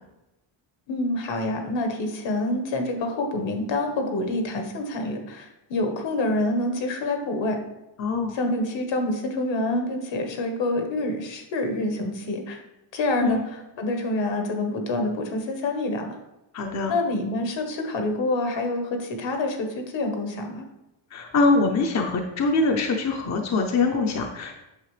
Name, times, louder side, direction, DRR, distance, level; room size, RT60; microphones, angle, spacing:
voice 1, 0.9-7.6 8.3-12.6 12.9-13.4 13.8-16.2 16.9-20.7, left 2 dB, 65° left, 4 dB, 1.4 m, -27 dB
voice 2, 8.0-8.3 13.2-13.4 16.5-17.0 21.1-24.5, left 3 dB, 35° left, 3 dB, 0.7 m, -23 dB
8.9 x 6.5 x 3.2 m, 0.97 s
cardioid pair, 170°, 48 cm